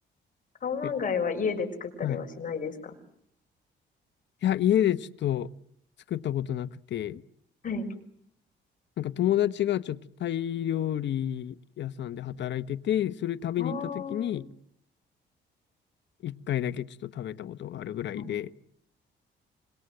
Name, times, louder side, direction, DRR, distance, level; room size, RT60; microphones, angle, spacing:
voice 1, 0.6-2.9 7.6-7.9 13.6-14.4 18.1-18.3, left 5 dB, 40° left, 4 dB, 6.4 m, -32 dB
voice 2, 4.4-5.5 6.1-7.2 9.0-14.4 16.2-18.5, left 11 dB, 65° left, 13 dB, 1.0 m, -29 dB
26.5 x 22.5 x 7.8 m, 0.67 s
cardioid pair, 90°, 20 cm